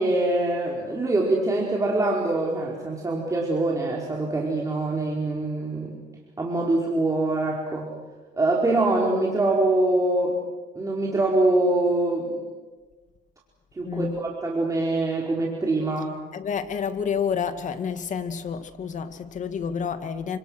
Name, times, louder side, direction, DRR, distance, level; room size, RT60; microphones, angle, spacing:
voice 1, 0.0-6.0 6.4-7.9 8.4-10.3 10.7-12.5 13.7-16.1, right 2 dB, 20° right, -2 dB, 4.5 m, -24 dB
voice 2, 13.8-14.2 16.3-20.4, left 6 dB, 45° left, 9 dB, 2.1 m, -29 dB
30.0 x 26.5 x 6.5 m, 1.3 s
cardioid pair, 110°, 17 cm